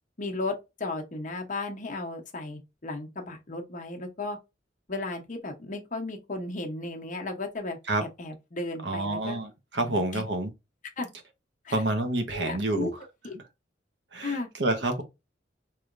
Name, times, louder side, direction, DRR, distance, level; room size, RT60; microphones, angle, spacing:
voice 1, 0.2-4.4 4.9-9.4 9.8-10.2 11.0-11.1 11.6-11.8 12.3-12.9 13.2-13.3 14.2-14.5, left 2 dB, 45° left, 0.9 m, -35 dB
voice 2, 8.8-10.5 11.7-12.9 14.1-15.0, right 2 dB, 70° right, 1.0 m, -28 dB
4.8 x 3.0 x 2.5 m
head